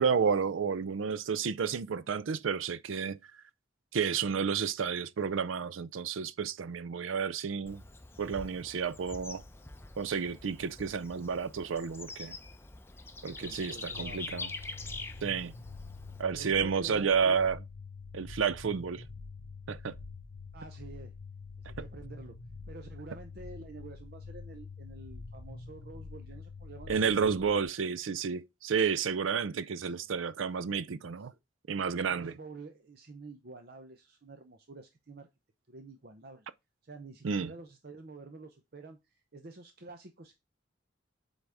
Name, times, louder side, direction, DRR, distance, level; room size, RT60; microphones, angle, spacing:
voice 1, 0.0-3.2 3.9-7.8 8.2-9.4 10.0-12.4 13.2-14.5 15.2-15.5 16.2-17.6 18.1-19.0 19.7-19.9 26.9-31.3 31.7-32.3 37.2-37.5, right 6 dB, 85° right, 0.5 m, -31 dB
Bird / Insect, 7.7-16.2, left 3 dB, 10° left, 0.6 m, -45 dB
voice 2, 13.2-14.3 16.3-17.4 20.5-21.1 21.8-22.4 22.7-27.1 29.8-30.0 32.1-35.3 35.7-36.5 36.8-40.3, right 3 dB, 50° right, 0.7 m, -49 dB
sound 1, 13.9-27.6, left 4 dB, 55° left, 0.8 m, -46 dB
7.9 x 4.0 x 3.4 m
head